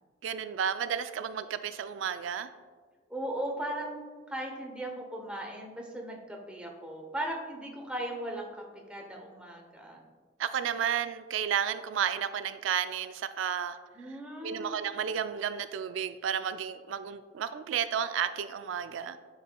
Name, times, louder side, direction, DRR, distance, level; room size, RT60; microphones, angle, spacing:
voice 1, 0.2-2.5 10.4-13.8 14.4-19.2, right 8 dB, 85° right, 11 dB, 0.3 m, -32 dB
voice 2, 3.1-8.5 8.9-10.0 13.9-14.8, right 1 dB, 5° right, 0 dB, 0.8 m, -37 dB
9.9 x 4.7 x 2.2 m, 1.5 s
head